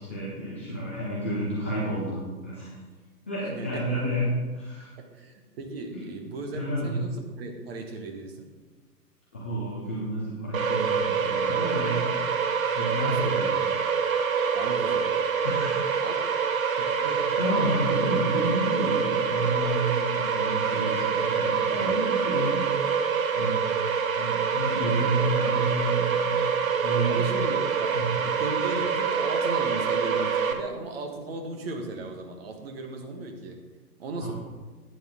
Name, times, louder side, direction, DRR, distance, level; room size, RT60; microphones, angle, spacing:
voice 1, 0.0-2.8 3.3-4.3 4.5-4.9 5.9-6.0 6.5-7.0 9.3-12.0 12.5-13.5 15.4-16.0 16.9-23.9 24.1-26.4 26.8-27.2 27.9-28.1 34.2-34.3, right 1 dB, 10° left, -9 dB, 0.5 m, -30 dB
voice 2, 3.5-4.0 5.0-8.5 13.0-13.4 14.5-15.1 16.0-16.1 16.8-17.2 21.7-22.2 27.1-33.6 34.0-34.3, right 3 dB, 35° right, 3 dB, 1.5 m, -36 dB
sound 1, 10.5-30.5, right 6 dB, 55° right, 1.0 m, -26 dB
11.0 x 9.0 x 3.6 m, 1.4 s
figure-of-eight pair, 130°, 49 cm